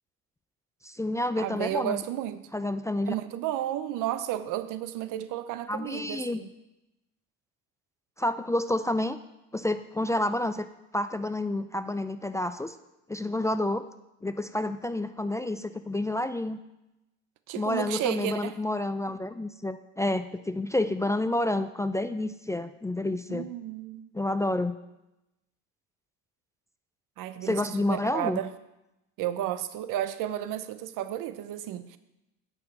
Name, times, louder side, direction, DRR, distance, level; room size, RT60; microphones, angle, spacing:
voice 1, 0.8-2.0 2.5-3.1 5.7-6.4 8.2-9.2 9.5-10.7 10.9-12.8 13.1-13.8 14.2-16.6 17.6-23.5 24.1-24.7 27.4-28.4, left 1 dB, 10° left, 11 dB, 0.3 m, -29 dB
voice 2, 1.4-2.5 3.0-6.5 17.5-18.6 23.3-24.1 27.2-28.5 29.2-32.0, right 12 dB, 75° right, 12 dB, 0.8 m, -32 dB
9.0 x 5.3 x 7.3 m, 0.93 s
cardioid pair, 95°, 32 cm